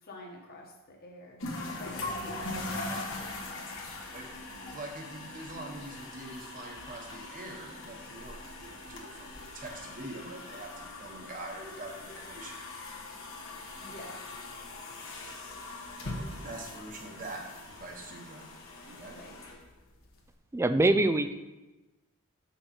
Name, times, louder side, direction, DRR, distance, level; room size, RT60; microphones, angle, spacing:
voice 1, 0.0-1.5 1.8-2.8 13.8-14.2 16.4-16.7 19.1-19.4, left 1 dB, 45° left, 0 dB, 1.5 m, -47 dB
sound 1, 1.4-20.3, left 2 dB, 60° left, 1.4 m, -42 dB
voice 2, 2.6-3.3 4.1-4.3 4.6-12.6 16.0-17.4 17.8-18.5 18.9-19.2, right 2 dB, 40° right, 0 dB, 1.1 m, -44 dB
voice 3, 20.5-21.3, right 2 dB, 10° right, 10 dB, 0.3 m, -24 dB
8.0 x 5.6 x 4.3 m, 1.1 s
head